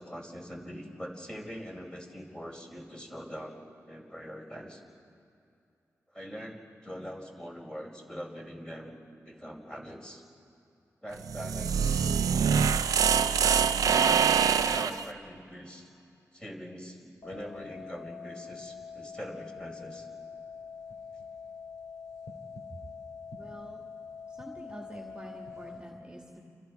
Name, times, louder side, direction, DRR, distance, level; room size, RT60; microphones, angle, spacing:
voice 1, 0.0-4.8 6.1-10.2 11.0-12.2 13.2-15.9 16.3-20.1, equal, 15° left, -1 dB, 4.8 m, -43 dB
sound 1, 11.2-15.0, right 7 dB, 85° right, 0.6 m, -24 dB
sound 2, 17.2-25.8, left 5 dB, 80° left, 3.5 m, -45 dB
voice 2, 23.4-23.8 24.3-26.4, right 1 dB, 15° right, -1 dB, 2.7 m, -46 dB
30.0 x 26.5 x 4.7 m, 2.6 s
cardioid pair, 70°, 6 cm